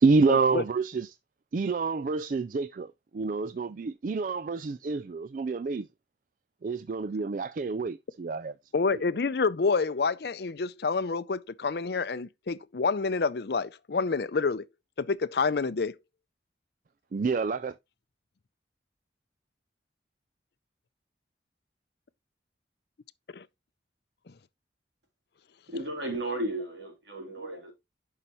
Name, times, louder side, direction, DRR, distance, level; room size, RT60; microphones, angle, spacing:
voice 1, 0.0-1.1 1.5-5.9 6.6-8.5 8.9-9.0 17.1-17.8, right 4 dB, 45° right, 0.3 m, -28 dB
voice 2, 8.7-14.7 15.0-15.9 23.3-23.5, left 4 dB, 60° left, 0.5 m, -28 dB
voice 3, 25.7-27.7, right 1 dB, 75° right, 3.3 m, -34 dB
11.0 x 5.7 x 3.0 m
head